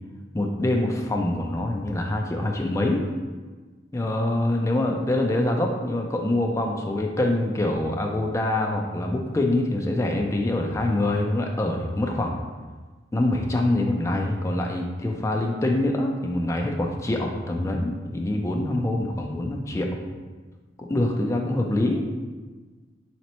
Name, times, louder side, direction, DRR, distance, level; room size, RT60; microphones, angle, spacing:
voice 1, 0.3-3.1 3.9-12.4 13.1-20.0 20.8-22.1, left 1 dB, 15° left, 2 dB, 0.3 m, -25 dB
3.1 x 2.9 x 4.2 m, 1.3 s
head